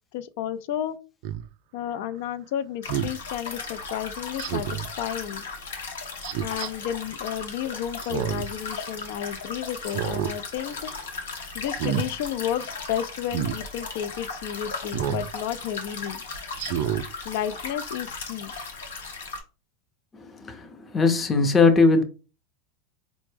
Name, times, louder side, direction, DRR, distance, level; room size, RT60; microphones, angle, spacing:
voice 1, 0.1-1.0 1.7-5.4 6.4-10.9 11.5-16.2 17.2-18.5, left 10 dB, 65° left, 0.4 m, -32 dB
Speech synthesizer, 1.2-1.4 2.9-3.2 4.4-4.9 6.2-6.7 8.0-8.5 8.9-9.0 9.8-10.4 10.7-11.0 11.7-12.1 13.3-13.6 14.9-15.3 15.8-15.9 16.6-17.1 17.5-17.6, right 10 dB, 60° right, 0.3 m, -29 dB
sound 1, 2.8-19.4, left 4 dB, 85° left, 0.8 m, -37 dB
voice 2, 20.9-22.0, left 4 dB, 20° left, 0.6 m, -19 dB
4.3 x 2.0 x 3.2 m
hypercardioid pair, 110°, 0 cm